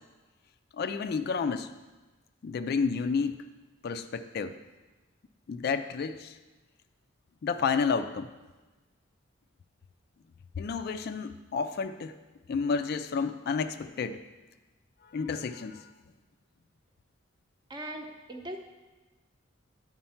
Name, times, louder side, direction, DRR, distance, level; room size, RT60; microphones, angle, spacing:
voice 1, 0.8-1.7 2.4-3.4 3.8-4.6 5.5-6.3 7.4-8.3 10.6-12.1 12.5-14.2 15.1-15.8, left 5 dB, 50° left, 10 dB, 0.3 m, -30 dB
voice 2, 17.7-18.6, right 1 dB, 20° right, 3 dB, 0.7 m, -39 dB
9.4 x 4.4 x 5.7 m, 1.2 s
head